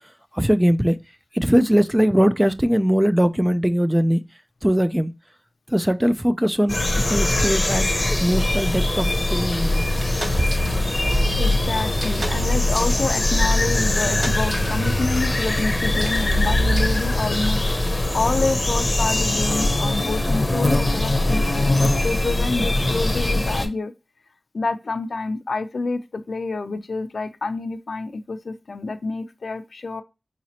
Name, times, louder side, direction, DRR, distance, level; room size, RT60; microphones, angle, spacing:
voice 1, 0.4-1.0 1.3-4.2 4.6-5.1 5.7-9.9, equal, 10° right, 0.4 m, -20 dB
sound 1, 6.7-23.7, left 1 dB, 35° left, 0.8 m, -22 dB
sound 2, 9.5-17.5, equal, 60° right, 1.4 m, -27 dB
voice 2, 11.4-23.9 24.5-30.0, left 3 dB, 75° left, 0.5 m, -28 dB
4.9 x 3.0 x 2.8 m
wide cardioid pair, 65°, 0 cm